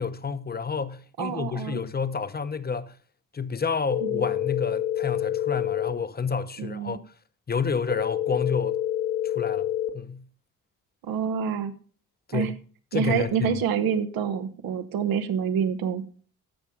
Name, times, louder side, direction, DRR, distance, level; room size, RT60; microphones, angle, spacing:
voice 1, 0.0-2.9 3.3-7.0 7.5-8.8 9.2-9.7 9.9-10.2 12.3-12.6 12.9-13.5, left 5 dB, 25° left, 0.9 m, -29 dB
voice 2, 1.2-1.8 4.0-4.2 6.6-7.0 11.0-11.7 12.3-12.5 12.9-16.0, right 7 dB, 85° right, 1.1 m, -27 dB
sound 1, 3.9-5.9 7.9-9.9, left 12 dB, 80° left, 2.1 m, -27 dB
14.5 x 5.6 x 5.0 m
supercardioid pair, 60°, 35 cm